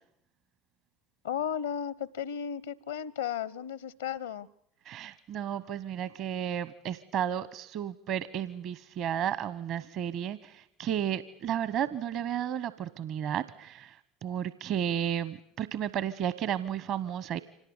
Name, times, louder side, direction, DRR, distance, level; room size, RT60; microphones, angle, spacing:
voice 1, 1.2-4.5, left 8 dB, 85° left, 21 dB, 0.9 m, -34 dB
voice 2, 4.8-17.4, right 9 dB, 55° right, 16 dB, 1.0 m, -33 dB
25.5 x 18.5 x 9.5 m, 0.74 s
hypercardioid pair, 70°, 0 cm